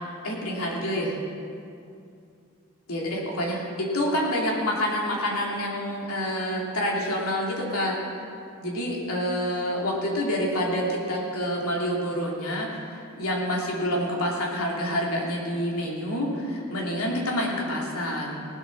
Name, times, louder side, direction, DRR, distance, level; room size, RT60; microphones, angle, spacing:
voice 1, 0.2-1.2 2.9-8.0 8.6-18.4, equal, 90° left, -2 dB, 2.8 m, -27 dB
18.0 x 8.0 x 6.2 m, 2.5 s
head